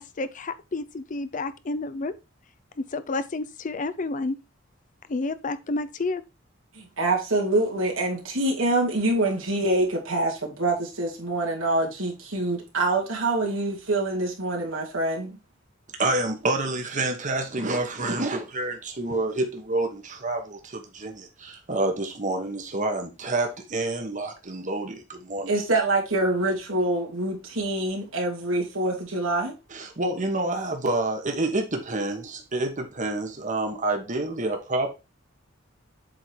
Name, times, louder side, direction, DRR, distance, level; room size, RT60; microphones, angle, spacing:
voice 1, 0.0-2.1 2.9-4.4 5.1-6.2, left 3 dB, 40° left, 0.5 m, -30 dB
voice 2, 6.7-15.4 25.5-29.5, right 2 dB, 90° right, 2.6 m, -25 dB
voice 3, 16.0-25.5 29.7-34.9, right 2 dB, 40° right, 1.3 m, -28 dB
7.7 x 3.7 x 4.5 m
head